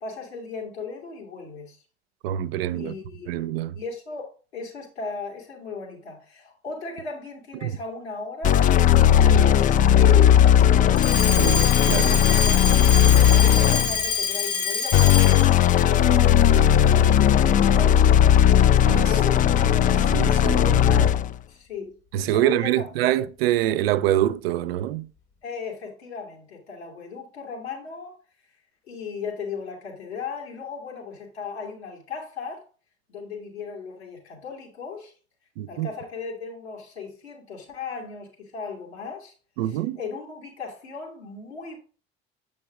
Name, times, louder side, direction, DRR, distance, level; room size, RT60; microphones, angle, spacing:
voice 1, 0.0-1.8 2.7-3.4 3.8-8.6 9.2-11.3 13.1-18.1 19.0-19.8 20.3-21.1 21.5-23.1 25.4-28.2 28.9-32.6 33.1-35.1 35.7-39.3 39.7-41.8, left 5 dB, 75° left, 2.3 m, -36 dB
voice 2, 2.2-2.9 3.3-3.8 7.6-7.8 9.3-9.4 11.2-12.3 18.8-19.2 19.6-19.7 20.0-21.1 22.1-25.1 35.6-35.9 39.6-40.0, right 12 dB, 65° right, 0.5 m, -25 dB
sound 1, 8.4-14.0 14.9-21.3, left 10 dB, 25° left, 0.4 m, -17 dB
Alarm, 11.0-15.6, left 5 dB, 50° left, 1.5 m, -26 dB
7.7 x 5.3 x 3.5 m
figure-of-eight pair, 55°, 32 cm